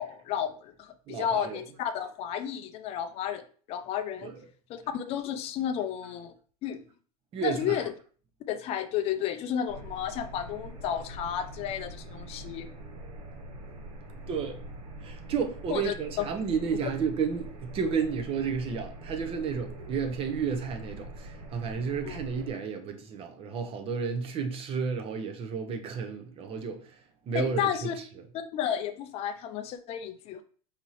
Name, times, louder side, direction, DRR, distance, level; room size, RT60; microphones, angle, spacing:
voice 1, 0.0-3.4 3.7-4.3 4.7-6.3 6.6-6.8 7.4-7.8 8.5-12.7 15.7-16.3 22.0-22.2 27.3-28.0 28.3-30.4, left 9 dB, 30° left, 0.4 m, -32 dB
voice 2, 1.1-1.6 4.2-4.3 7.3-7.9 14.3-14.6 15.0-26.8 27.3-27.9, right 6 dB, 30° right, 0.7 m, -32 dB
sound 1, 9.7-22.5, right 1 dB, 80° right, 1.3 m, -44 dB
5.1 x 2.9 x 3.0 m
supercardioid pair, 140°, 19 cm